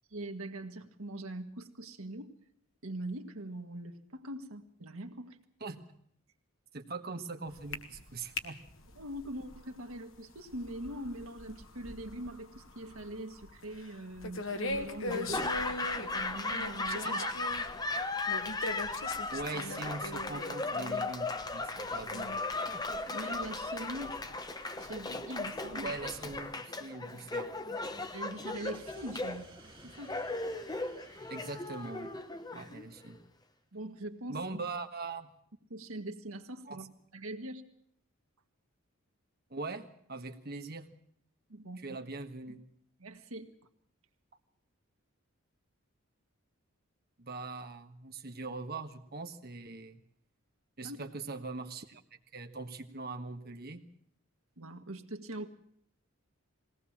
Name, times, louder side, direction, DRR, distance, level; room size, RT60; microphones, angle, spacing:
voice 1, 0.1-2.3 2.8-5.4 9.0-15.5 16.0-17.2 22.9-24.2 24.8-25.9 28.1-29.5 29.8-30.2 33.7-34.4 35.7-37.6 41.5-42.0 43.0-43.5 50.8-51.0 54.6-55.5, right 1 dB, 80° right, 6 dB, 1.8 m, -42 dB
voice 2, 6.7-8.6 17.0-17.3 19.3-22.4 25.7-27.5 31.3-32.1 32.5-33.2 34.3-35.3 36.7-36.8 39.5-40.9 41.8-42.6 47.2-50.0 50.8-52.0 52.3-53.8, right 3 dB, 45° right, 6 dB, 1.5 m, -41 dB
sound 1, 7.5-26.5, left 2 dB, 65° left, 1.9 m, -43 dB
Laughter / Applause, 15.1-33.2, left 3 dB, 20° left, 1.0 m, -37 dB
sound 2, 28.7-33.1, right 3 dB, 25° right, 2.4 m, -58 dB
21.0 x 18.0 x 7.3 m, 0.68 s
head